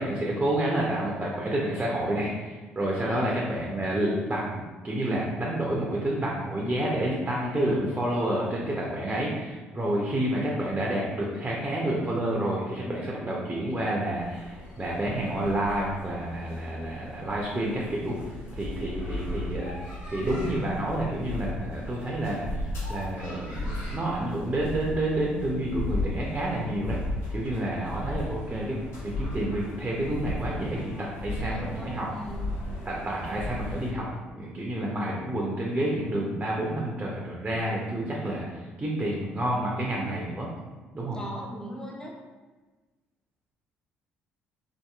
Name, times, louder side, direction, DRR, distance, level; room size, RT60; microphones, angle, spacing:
voice 1, 0.0-19.8 20.1-27.0 27.3-32.1 32.9-34.1 34.3-40.5 40.9-41.2, right 1 dB, 20° right, -3 dB, 0.6 m, -29 dB
voice 2, 2.9-3.4 31.3-32.5 41.1-42.1, equal, 15° left, -2 dB, 0.7 m, -40 dB
sound 1, 14.2-33.9, left 1 dB, 65° left, 1.3 m, -36 dB
2.8 x 2.5 x 2.3 m, 1.3 s
hypercardioid pair, 55°, 5 cm